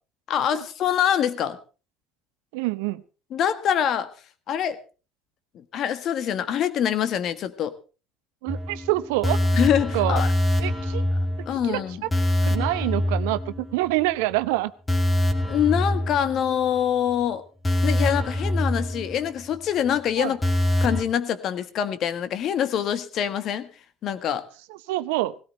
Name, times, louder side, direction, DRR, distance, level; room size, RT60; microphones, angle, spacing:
voice 1, 0.3-1.6 3.3-4.1 4.5-4.8 5.5-7.7 9.5-10.3 11.5-12.0 15.4-17.4 17.8-20.4 20.8-23.7 24.0-24.4, left 9 dB, 55° left, 12 dB, 1.5 m, -25 dB
voice 2, 2.5-3.0 8.4-9.4 9.9-10.2 10.6-11.0 11.6-12.1 12.4-14.7 20.2-20.3 24.7-25.4, right 18 dB, 75° right, 14 dB, 0.7 m, -26 dB
sound 1, 8.5-14.0 14.3-14.4 14.9-16.8 17.1-17.2 17.6-19.6 19.9-20.0 20.4-21.0, left 1 dB, 15° left, 2.2 m, -25 dB
18.0 x 17.0 x 3.3 m, 0.35 s
hypercardioid pair, 65°, 0 cm